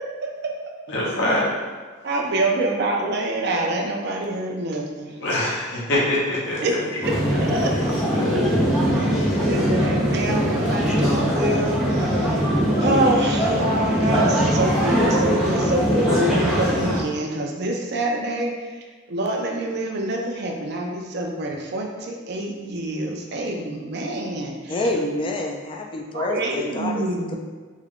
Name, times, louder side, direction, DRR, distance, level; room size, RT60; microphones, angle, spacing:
voice 1, 0.9-1.5 5.2-6.6 7.0-7.1 7.7-8.5 9.2-9.4, left 1 dB, 60° left, -6 dB, 0.7 m, -24 dB
voice 2, 2.0-5.1 6.5-6.8 7.3-7.7 9.0-9.1 9.4-12.4 12.8-18.5 19.1-24.8 26.1-27.4, right 1 dB, 55° right, 0 dB, 0.5 m, -26 dB
sound 1, 7.0-17.0, equal, ahead, 0.7 m, -21 dB
voice 3, 24.7-27.4, left 2 dB, 25° left, 2 dB, 0.3 m, -27 dB
3.6 x 2.2 x 3.5 m, 1.5 s
head